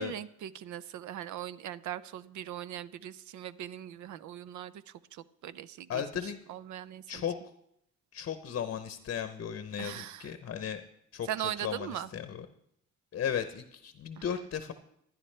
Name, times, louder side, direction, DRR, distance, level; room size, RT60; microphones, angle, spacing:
voice 1, 0.0-7.3 9.8-10.3 11.2-12.1 14.2-14.3, right 11 dB, 70° right, 16 dB, 0.6 m, -40 dB
voice 2, 5.9-6.4 7.1-7.3 8.1-10.8 11.1-11.3 11.6-12.4 13.1-14.7, left 8 dB, 45° left, 9 dB, 0.8 m, -35 dB
15.5 x 11.0 x 3.3 m, 0.74 s
cardioid pair, 90°, 30 cm